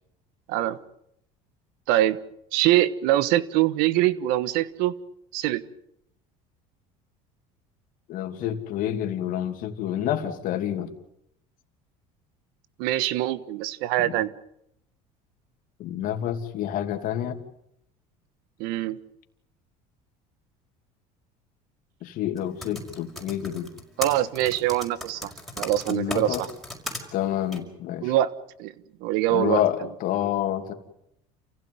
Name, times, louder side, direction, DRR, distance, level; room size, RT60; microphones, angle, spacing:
voice 1, 1.9-2.2 2.5-4.9 5.3-5.6 12.8-14.3 18.6-19.0 24.0-25.3 25.6-26.5 28.0-28.3 28.6-28.7 29.0-29.6, right 14 dB, 75° right, 16 dB, 1.4 m, -23 dB
voice 2, 8.1-10.9 14.0-14.2 15.8-17.4 22.0-23.7 25.9-26.4 27.1-28.1 29.3-30.7, left 11 dB, 60° left, 7 dB, 2.8 m, -28 dB
Typing, 22.4-27.0 27.5-27.6, left 1 dB, ahead, 5.6 m, -36 dB
28.5 x 16.0 x 9.5 m, 0.78 s
supercardioid pair, 105°, 16 cm